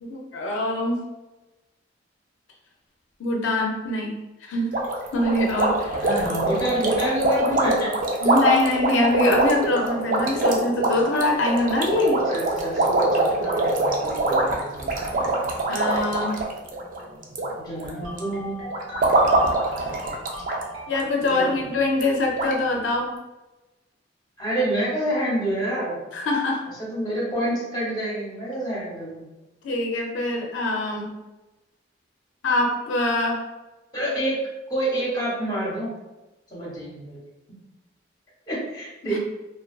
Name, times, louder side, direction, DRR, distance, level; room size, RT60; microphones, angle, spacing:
voice 1, 0.0-1.0 3.2-4.8 5.1-6.0 8.2-12.2 15.7-16.4 20.9-23.1 26.1-26.6 29.6-31.1 32.4-33.4 39.1-39.2, left 2 dB, 85° left, 0 dB, 0.4 m, -24 dB
sound 1, 4.7-17.5 17.8-18.2 18.7-20.6 20.9-21.0 21.4-21.5 22.0-22.1 22.4-22.5, right 2 dB, 45° right, 0.4 m, -23 dB
voice 2, 5.9-7.9 8.2-8.3 12.3-14.9 15.1-15.4 17.5-18.7 21.3-21.6 24.4-26.0 26.7-29.3 33.9-34.4 34.7-35.9 36.5-37.2 38.5-39.2, right 1 dB, 20° left, -4 dB, 0.7 m, -28 dB
sound 2, 18.0-21.2, left 1 dB, 90° right, 1.1 m, -39 dB
2.3 x 2.2 x 2.3 m, 1.1 s
head